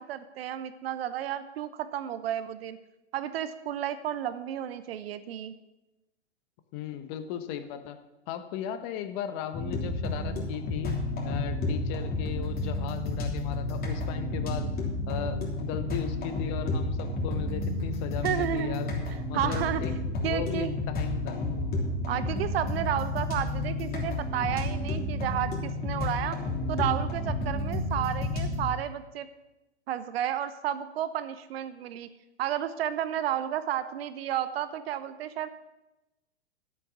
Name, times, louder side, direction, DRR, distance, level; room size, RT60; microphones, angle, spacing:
voice 1, 0.0-2.8 3.1-5.5 18.2-18.8 19.3-19.8 20.2-20.7 22.1-26.4 26.7-29.3 29.9-32.1 32.4-35.5, right 11 dB, 60° right, 13 dB, 1.0 m, -32 dB
voice 2, 6.7-8.0 8.3-14.7 15.1-18.9 19.3-19.9 20.2-21.5, left 9 dB, 40° left, 9 dB, 1.2 m, -37 dB
sound 1, 9.5-28.7, left 2 dB, 25° left, 3.3 m, -31 dB
12.0 x 8.2 x 6.1 m, 0.98 s
hypercardioid pair, 115°, 34 cm